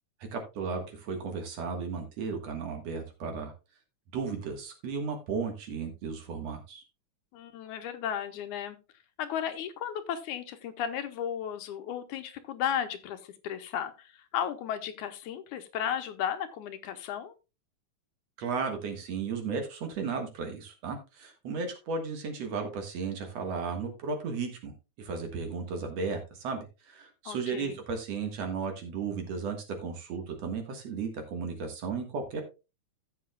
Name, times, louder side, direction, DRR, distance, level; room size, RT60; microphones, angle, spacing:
voice 1, 0.3-3.5 4.1-6.8 18.4-32.4, right 5 dB, 60° right, 4 dB, 2.5 m, -35 dB
voice 2, 7.3-8.8 9.2-17.3 27.3-27.8, left 9 dB, 80° left, 9 dB, 2.2 m, -34 dB
14.5 x 7.7 x 2.3 m, 0.29 s
omnidirectional pair, 3.6 m